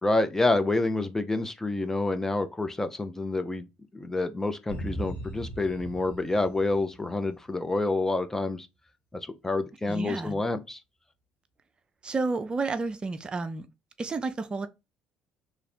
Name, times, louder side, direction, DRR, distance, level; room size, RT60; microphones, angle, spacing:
voice 1, 0.0-3.7 3.9-8.7 9.4-10.8, left 2 dB, 15° left, 0.7 m, -28 dB
sound 1, 4.7-7.4, equal, 60° left, 1.5 m, -38 dB
voice 2, 9.9-10.4 12.0-13.7 14.0-14.7, right 3 dB, 35° right, 0.6 m, -31 dB
3.1 x 2.6 x 4.3 m
hypercardioid pair, 55°, 3 cm